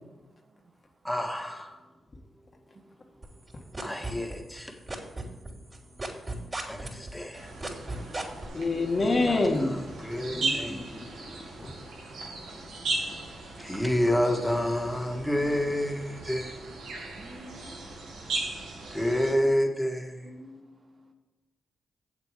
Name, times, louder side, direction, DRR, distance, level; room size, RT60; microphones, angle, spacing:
voice 1, 1.0-1.7 3.8-4.8 6.7-7.5 9.2-9.4 10.0-10.8 13.6-16.6 18.9-20.3, equal, 10° left, 3 dB, 2.0 m, -28 dB
sound 1, 3.2-4.6 4.9-8.5, right 2 dB, 30° right, 3.5 m, -35 dB
sound 2, 7.3-19.3, right 2 dB, 90° right, 2.0 m, -37 dB
voice 2, 8.5-9.9 10.3-11.3 11.6-11.7, left 2 dB, 45° left, 1 dB, 1.8 m, -27 dB
voice 3, 17.2-18.4 20.2-21.1, equal, 50° right, 4 dB, 1.4 m, -50 dB
8.2 x 7.9 x 5.1 m, 1.2 s
supercardioid pair, 55°, 0 cm